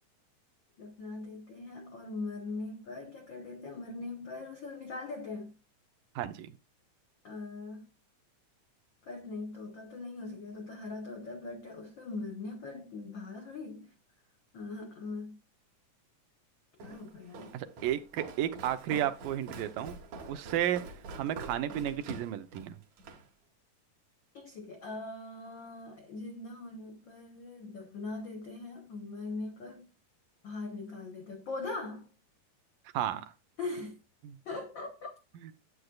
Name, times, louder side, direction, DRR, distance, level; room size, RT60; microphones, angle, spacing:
voice 1, 0.8-5.5 7.2-7.8 9.0-13.9 14.5-15.4 16.8-17.6 24.3-29.8 30.4-32.1 33.6-34.0 34.4-35.1, left 3 dB, 80° left, 1.0 m, -41 dB
voice 2, 6.2-6.5 17.5-19.9 20.3-20.8 21.2-22.8 32.9-33.2 34.2-34.4 35.4-35.5, right 11 dB, 90° right, 2.4 m, -32 dB
Walk footsteps, 16.8-23.3, right 3 dB, 65° right, 2.4 m, -46 dB
9.9 x 7.9 x 2.3 m
omnidirectional pair, 3.7 m